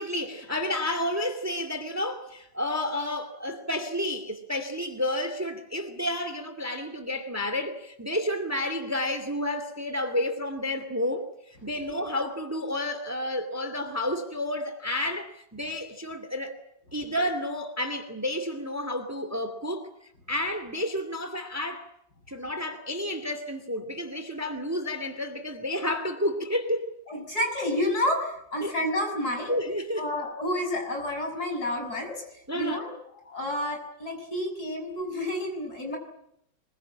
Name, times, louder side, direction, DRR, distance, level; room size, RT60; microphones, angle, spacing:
voice 1, 0.0-11.2 11.6-16.6 16.9-19.9 20.3-21.9 22.3-26.9 28.6-28.7 29.5-30.1 32.5-32.8, left 1 dB, 10° right, 9 dB, 2.2 m, -30 dB
voice 2, 27.1-29.6 30.0-32.9 33.3-36.0, left 1 dB, 55° left, 3 dB, 7.0 m, -30 dB
25.5 x 22.0 x 8.8 m, 0.76 s
omnidirectional pair, 2.0 m